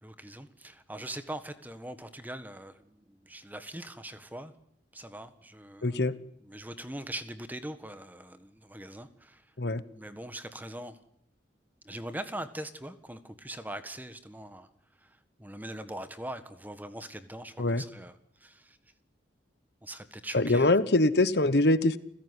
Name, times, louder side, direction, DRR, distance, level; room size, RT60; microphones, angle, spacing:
voice 1, 0.0-4.5 4.9-6.1 6.4-9.5 9.9-11.0 11.8-14.7 15.0-18.8 19.8-20.7, right 1 dB, 10° right, 10 dB, 1.5 m, -42 dB
voice 2, 5.8-6.1 9.6-9.8 17.6-17.8 20.3-22.0, left 2 dB, 65° left, 15 dB, 1.1 m, -23 dB
29.5 x 16.0 x 9.9 m, 0.73 s
head